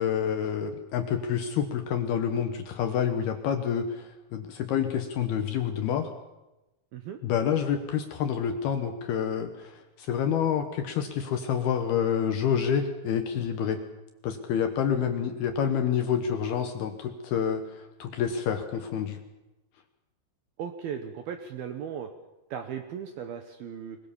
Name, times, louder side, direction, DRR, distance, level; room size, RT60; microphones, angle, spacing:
voice 1, 0.0-6.1 7.2-13.8 14.2-19.2, left 8 dB, 70° left, 7 dB, 2.5 m, -28 dB
voice 2, 20.6-22.1 22.5-24.0, right 8 dB, 75° right, 6 dB, 2.4 m, -37 dB
22.0 x 21.0 x 7.1 m, 1.0 s
omnidirectional pair, 5.6 m